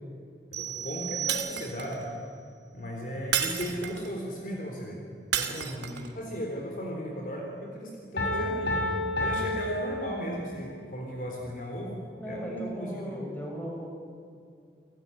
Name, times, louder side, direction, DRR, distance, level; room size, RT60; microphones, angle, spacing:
sound 1, 0.5-2.0, right 9 dB, 45° right, 3.1 m, -36 dB
voice 1, 0.6-2.2 2.7-5.0 5.3-8.8 9.2-13.1, equal, 50° left, 0 dB, 3.9 m, -36 dB
Shatter, 1.3-2.0 3.3-4.1 5.3-6.1, right 9 dB, 85° right, 2.2 m, -31 dB
voice 2, 5.8-6.2 12.2-13.9, equal, 10° left, -1 dB, 5.9 m, -38 dB
Piano, 8.2-10.7, left 1 dB, 80° left, 6.4 m, -30 dB
29.0 x 17.0 x 10.0 m, 2.3 s
head